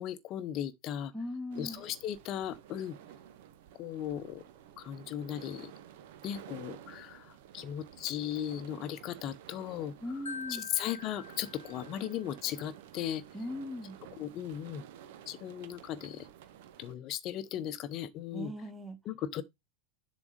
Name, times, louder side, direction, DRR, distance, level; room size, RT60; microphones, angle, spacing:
voice 1, 0.0-1.1 1.5-3.0 3.8-4.4 4.8-5.7 6.2-9.9 10.5-13.2 14.2-14.8 15.3-16.3 16.8-18.5 19.0-19.4, left 11 dB, 35° left, 0.8 m, -37 dB
voice 2, 1.1-1.8 10.0-10.7 13.3-14.0 18.3-19.0, left 1 dB, 5° right, 1.4 m, -39 dB
sound 1, 1.5-16.9, right 10 dB, 50° right, 0.8 m, -52 dB
Marimba xylophone, 10.3-12.3, left 5 dB, 75° left, 0.9 m, -45 dB
7.2 x 4.0 x 5.0 m
figure-of-eight pair, 90°, 0 cm